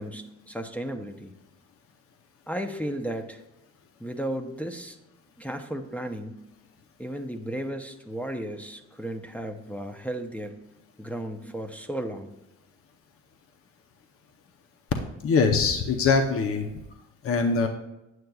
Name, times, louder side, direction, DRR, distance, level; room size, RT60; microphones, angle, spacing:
voice 1, 0.0-1.3 2.5-3.4 4.0-5.0 5.4-6.4 7.0-10.6 11.0-12.3, right 1 dB, 5° left, 4 dB, 0.6 m, -34 dB
voice 2, 15.2-16.8 17.2-17.7, left 4 dB, 50° left, 5 dB, 0.7 m, -23 dB
9.1 x 7.8 x 2.3 m, 0.92 s
cardioid pair, 90°, 30 cm